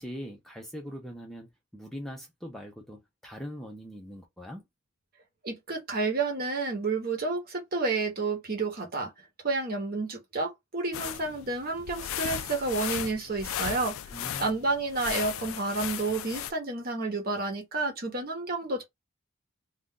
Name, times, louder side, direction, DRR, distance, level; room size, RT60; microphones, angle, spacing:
voice 1, 0.0-4.6 14.1-14.6, equal, ahead, 0.5 m, -42 dB
voice 2, 5.4-9.1 9.4-13.9 14.4-18.8, right 3 dB, 45° right, 0.9 m, -30 dB
sound 1, 10.9-16.5, left 10 dB, 70° left, 0.3 m, -36 dB
2.5 x 2.2 x 3.6 m
head